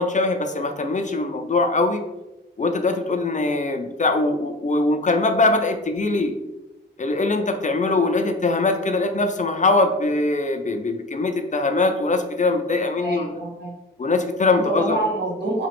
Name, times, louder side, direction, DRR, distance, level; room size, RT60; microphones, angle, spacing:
voice 1, 0.0-2.0 2.6-6.3 7.0-13.3 14.0-15.0, left 2 dB, 40° left, 6 dB, 0.4 m, -22 dB
voice 2, 13.0-13.7 14.5-15.7, right 2 dB, 65° right, -2 dB, 1.1 m, -27 dB
4.1 x 2.9 x 3.0 m, 1.0 s
wide cardioid pair, 85°, 19 cm